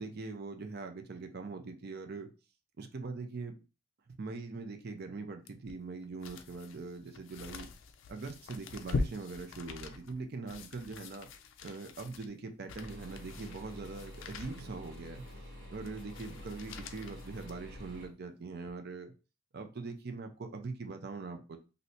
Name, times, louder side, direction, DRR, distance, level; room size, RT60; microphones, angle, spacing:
voice 1, 0.0-2.3 2.8-3.5 4.1-7.7 8.1-11.3 11.6-15.2 15.7-19.1 19.5-21.6, right 3 dB, 45° right, 6 dB, 0.5 m, -42 dB
sound 1, 5.5-18.1 18.6-18.7, left 3 dB, 60° left, 0.4 m, -43 dB
sound 2, 12.8-18.1, left 1 dB, 65° right, 1.5 m, -48 dB
3.1 x 2.7 x 2.7 m, 0.32 s
head